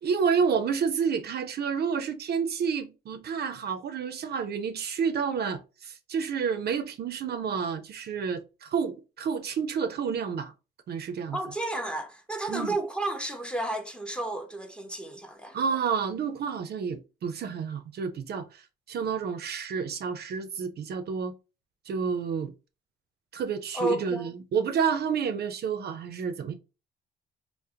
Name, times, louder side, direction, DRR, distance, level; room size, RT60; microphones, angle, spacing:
voice 1, 0.0-10.5 10.9-11.4 12.5-12.7 15.5-18.6 18.9-21.3 21.9-22.5 23.3-26.5, right 6 dB, 55° right, 0.5 m, -29 dB
voice 2, 11.3-15.6 23.7-24.3, right 2 dB, 5° left, 0.6 m, -32 dB
3.5 x 2.0 x 2.7 m
cardioid pair, 90°, 20 cm